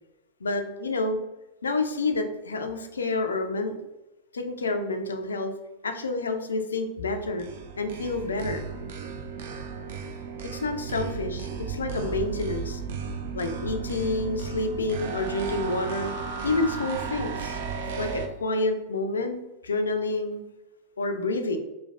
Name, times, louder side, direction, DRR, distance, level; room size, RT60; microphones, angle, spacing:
voice 1, 0.4-1.2 1.6-3.8 4.3-5.5 5.8-7.5 7.8-8.6 10.5-12.8 13.3-16.1 16.4-17.6 18.0-20.4 21.0-21.6, left 2 dB, 70° left, 6 dB, 0.3 m, -28 dB
sound 1, 7.2-18.3, right 5 dB, 55° right, 0.3 m, -34 dB
3.2 x 2.2 x 2.3 m, 0.99 s
figure-of-eight pair, 90°, 0 cm